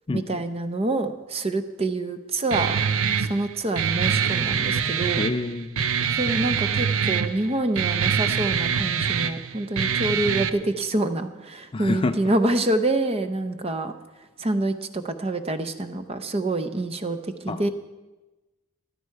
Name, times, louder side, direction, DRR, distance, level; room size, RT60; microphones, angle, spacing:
voice 1, 0.1-2.8 3.2-5.3 6.1-13.9 14.4-17.7, right 2 dB, 30° right, 9 dB, 0.7 m, -26 dB
Guitar, 2.5-10.5, right 7 dB, 75° right, 0.7 m, -24 dB
voice 2, 5.2-5.8 11.7-12.2 17.5-17.6, left 2 dB, 25° left, 11 dB, 0.3 m, -27 dB
14.5 x 13.0 x 4.7 m, 1.1 s
head